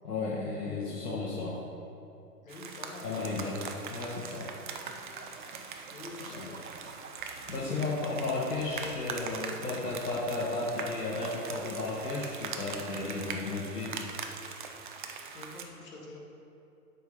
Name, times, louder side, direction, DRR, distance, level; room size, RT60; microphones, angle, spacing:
voice 1, 0.0-1.6 3.0-3.6 3.9-4.5 6.3-6.5 7.5-14.0, left 3 dB, 70° left, -4 dB, 1.4 m, -34 dB
voice 2, 2.4-3.1 5.9-6.6 7.6-7.9 13.2-13.4 15.3-16.2, left 2 dB, 55° left, -1 dB, 1.7 m, -46 dB
sound 1, 2.5-15.6, right 5 dB, 35° right, 0.5 m, -42 dB
sound 2, 4.7-10.0, right 4 dB, 60° right, 1.0 m, -50 dB
8.2 x 4.6 x 5.1 m, 2.7 s
figure-of-eight pair, 120°, 48 cm